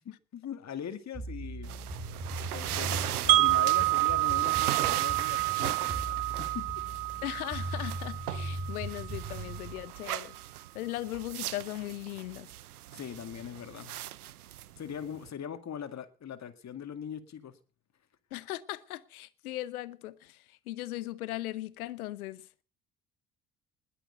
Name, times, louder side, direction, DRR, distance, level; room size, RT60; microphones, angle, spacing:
voice 1, 0.1-1.7 2.5-6.8 12.9-14.0 14.8-17.6, left 8 dB, 35° left, 2.0 m, -41 dB
sound 1, 1.1-9.8, right 2 dB, 30° right, 4.4 m, -39 dB
sound 2, 1.6-15.3, right 13 dB, 85° right, 0.7 m, -39 dB
Wind chime, 3.3-9.3, right 18 dB, 50° right, 0.9 m, -28 dB
voice 2, 7.2-10.3 10.7-12.5 18.3-20.4 20.7-22.4, left 16 dB, 75° left, 1.0 m, -38 dB
20.5 x 6.9 x 6.7 m
figure-of-eight pair, 55°, 44 cm